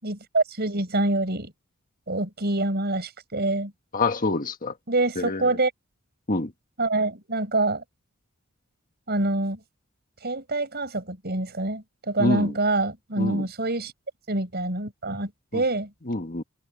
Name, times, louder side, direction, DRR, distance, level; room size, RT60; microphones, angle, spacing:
voice 1, 0.0-1.5 2.1-3.7 4.9-5.7 6.8-7.8 9.1-9.6 10.2-13.9 14.3-15.9, right 2 dB, 50° right, 5.8 m, -26 dB
voice 2, 3.9-4.7 5.2-5.4 6.3-6.5 12.2-12.5 13.2-13.4 15.5-15.6 16.1-16.4, left 2 dB, 40° left, 1.5 m, -26 dB
head